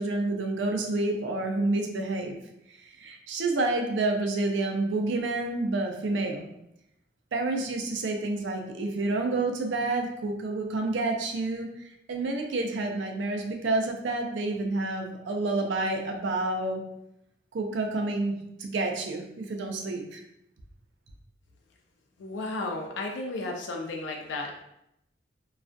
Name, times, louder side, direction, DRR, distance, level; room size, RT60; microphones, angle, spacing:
voice 1, 0.0-2.4 2.7-6.5 7.3-16.8 17.5-20.2, right 2 dB, 80° right, 3 dB, 0.4 m, -29 dB
voice 2, 22.2-24.6, left 2 dB, 80° left, 1 dB, 0.4 m, -33 dB
2.3 x 2.1 x 2.5 m, 0.81 s
head